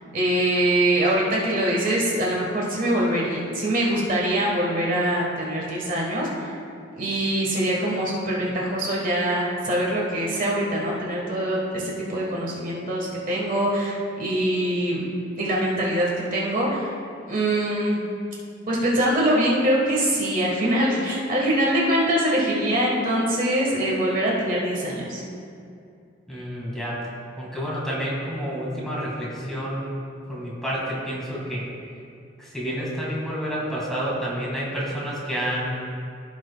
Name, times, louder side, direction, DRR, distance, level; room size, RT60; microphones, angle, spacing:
voice 1, 0.1-6.5 6.9-15.0 15.4-16.9 17.3-18.0 18.7-25.2, right 1 dB, 45° right, -3 dB, 1.5 m, -23 dB
voice 2, 26.3-27.0 27.4-30.0 30.3-31.7 32.4-35.7, equal, ahead, -6 dB, 1.9 m, -29 dB
15.5 x 6.2 x 2.3 m, 2.5 s
head